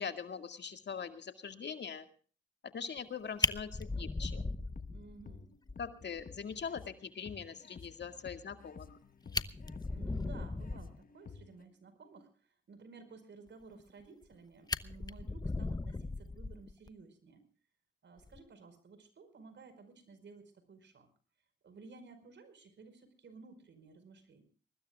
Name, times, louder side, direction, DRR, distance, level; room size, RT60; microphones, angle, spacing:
voice 1, 0.0-2.1 2.7-4.4 5.8-9.0, left 6 dB, 60° left, 8 dB, 2.1 m, -42 dB
Fire, 3.0-3.1 3.4-5.3 5.7-5.8 6.2-6.3 6.6-6.7 8.9-9.0 9.2-11.0 13.8-14.3 14.7-16.9 18.2-18.4, left 3 dB, 20° left, 1.0 m, -37 dB
sound 1, 4.5-11.6, left 5 dB, 45° left, 1.1 m, -53 dB
voice 2, 4.9-5.5 9.9-17.4 18.0-21.1 21.6-24.4, right 4 dB, 65° right, 11 dB, 5.0 m, -55 dB
23.5 x 20.0 x 2.4 m, 0.40 s
cardioid pair, 70°, 20 cm